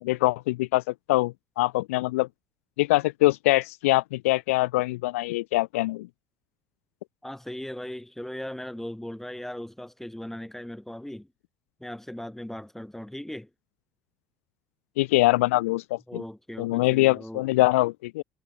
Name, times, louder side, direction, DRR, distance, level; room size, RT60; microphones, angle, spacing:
voice 1, 0.0-2.3 2.8-6.1 15.0-16.2 16.6-18.2, left 19 dB, 75° left, 0.8 m, -23 dB
voice 2, 7.2-11.3 11.8-13.5 16.1-17.5, left 1 dB, 5° left, 5.8 m, -38 dB
hypercardioid pair, 65°, 7 cm